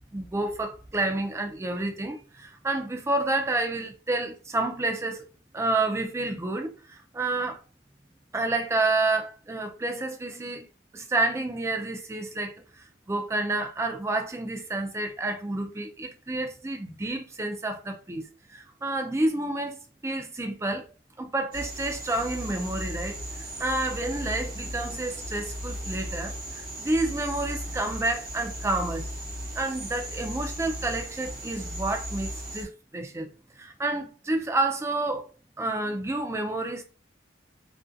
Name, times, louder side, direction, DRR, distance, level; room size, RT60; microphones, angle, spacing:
voice 1, 0.1-5.3 5.5-7.6 8.3-10.7 10.9-20.9 21.2-23.2 23.6-29.1 29.5-33.3 33.6-35.3 35.6-36.8, right 2 dB, 15° right, 0.4 m, -29 dB
sound 1, 21.5-32.6, equal, 50° right, 0.8 m, -36 dB
2.6 x 2.5 x 2.2 m
head